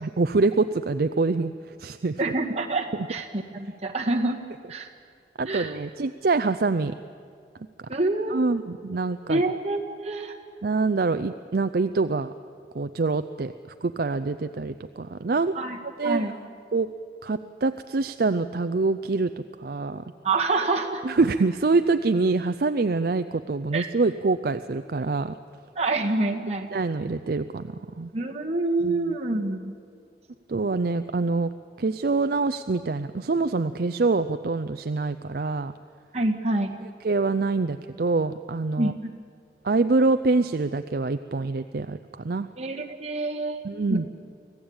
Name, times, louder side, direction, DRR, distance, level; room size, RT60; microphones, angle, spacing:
voice 1, 0.0-2.2 5.4-6.9 8.3-9.4 10.6-12.3 12.7-13.5 13.8-15.5 16.0-16.3 16.7-16.9 17.2-19.3 19.6-20.0 21.0-25.3 26.7-28.1 28.8-29.1 30.5-31.5 31.8-35.7 37.0-38.9 39.6-42.5 43.6-44.1, right 3 dB, 55° right, 10 dB, 0.5 m, -25 dB
voice 2, 2.2-4.4 4.7-4.9 5.5-5.8 7.9-8.5 9.3-10.4 15.5-15.8 16.0-16.3 20.2-21.0 23.7-23.9 25.8-26.7 28.1-29.7 36.1-36.7 38.8-38.9 42.6-43.6 43.9-44.0, right 2 dB, 35° right, 1 dB, 1.8 m, -26 dB
25.5 x 16.5 x 8.8 m, 2.3 s
head